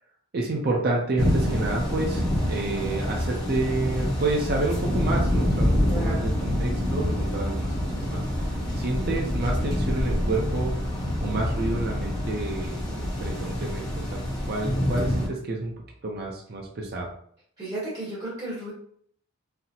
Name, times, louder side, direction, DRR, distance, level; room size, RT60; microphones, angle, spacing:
voice 1, 0.3-8.2 8.7-10.7 11.2-14.2 14.5-15.7 16.0-17.1, right 2 dB, 45° right, 0 dB, 0.5 m, -29 dB
sound 1, 1.2-15.3, left 1 dB, 15° left, 0.7 m, -26 dB
voice 2, 5.9-6.3 17.6-18.7, right 1 dB, 25° right, -8 dB, 1.0 m, -33 dB
4.1 x 2.0 x 2.7 m, 0.62 s
head